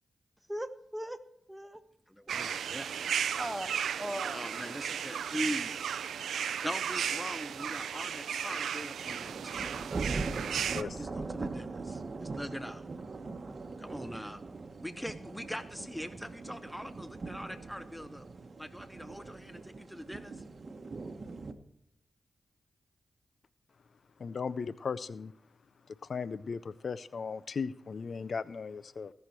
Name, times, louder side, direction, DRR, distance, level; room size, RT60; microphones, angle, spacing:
voice 1, 0.5-1.2 1.5-1.8 2.3-2.5 3.4-3.7 4.0-4.5, equal, 10° right, 1.2 m, -38 dB
voice 2, 2.1-3.3 4.3-5.9 6.6-9.8 11.0-12.8 13.8-14.4 14.8-18.3 18.6-20.4, equal, 5° left, 0.7 m, -41 dB
sound 1, 2.3-10.8, right 8 dB, 85° right, 0.4 m, -35 dB
sound 2, 9.0-21.5, right 3 dB, 55° right, 1.0 m, -41 dB
voice 3, 10.7-11.3 24.2-25.3 26.1-29.1, left 5 dB, 65° left, 0.4 m, -37 dB
17.5 x 6.4 x 4.4 m
supercardioid pair, 40°, 0 cm